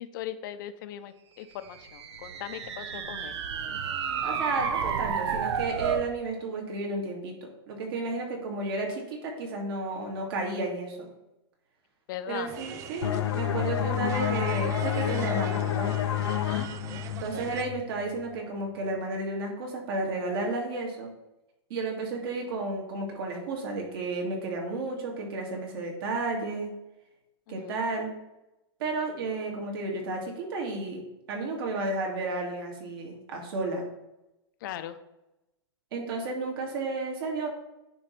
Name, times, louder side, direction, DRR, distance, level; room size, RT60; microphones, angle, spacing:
voice 1, 0.0-3.4 12.1-12.5 16.4-16.7 27.5-27.7 34.6-35.0, left 11 dB, 50° left, 11 dB, 0.7 m, -39 dB
sound 1, 1.7-6.1, right 7 dB, 75° right, 0.9 m, -31 dB
voice 2, 4.2-11.1 12.3-15.9 17.2-21.1 21.7-26.7 27.5-28.1 28.8-31.0 31.3-33.9 35.9-37.5, right 3 dB, 55° right, 0 dB, 2.3 m, -32 dB
sound 2, 12.5-17.6, right 9 dB, 20° right, 0.4 m, -41 dB
sound 3, 13.0-18.4, left 12 dB, 85° left, 0.6 m, -29 dB
9.6 x 3.2 x 5.9 m, 0.94 s
supercardioid pair, 155°, 14 cm